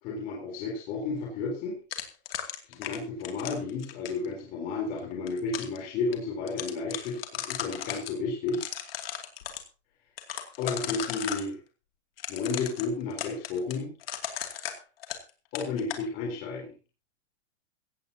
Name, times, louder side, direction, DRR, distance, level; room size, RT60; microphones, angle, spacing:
voice 1, 0.0-1.8 2.7-8.7 10.6-11.6 12.3-13.9 15.5-16.7, left 4 dB, 25° left, -1 dB, 3.8 m, -32 dB
sound 1, 1.9-4.3 5.0-5.8 6.1-6.2 6.5-8.1 8.5-9.6 10.2-11.5 12.2-15.3 15.5-16.0, left 10 dB, 55° left, 2.7 m, -36 dB
16.5 x 16.0 x 2.9 m, 0.34 s
supercardioid pair, 180°, 34 cm